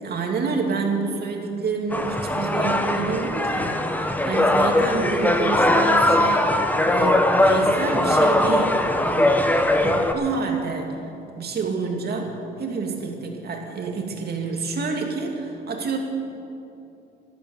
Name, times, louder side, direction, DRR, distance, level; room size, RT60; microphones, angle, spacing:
voice 1, 0.0-9.4 9.8-11.0 11.4-16.0, right 4 dB, 55° right, 1 dB, 2.5 m, -28 dB
sound 1, 1.9-10.1, left 1 dB, 10° left, 1.2 m, -20 dB
13.0 x 12.0 x 7.2 m, 2.7 s
cardioid pair, 90°, 20 cm